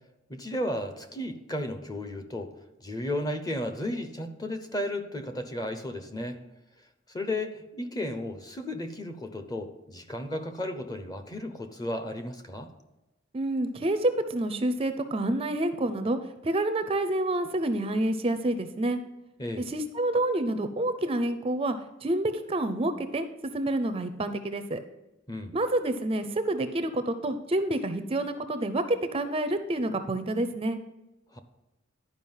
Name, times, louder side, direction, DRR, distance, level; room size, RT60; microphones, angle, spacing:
voice 1, 0.3-2.5 2.8-6.4 7.1-12.7 19.4-19.7 25.3-25.6 31.3-31.4, left 1 dB, 20° left, 8 dB, 0.8 m, -34 dB
voice 2, 13.3-16.2 16.4-19.0 19.7-21.8 22.0-23.3 23.5-24.8 25.5-30.8, right 1 dB, 30° right, 10 dB, 0.5 m, -28 dB
11.0 x 5.0 x 5.5 m, 0.98 s
head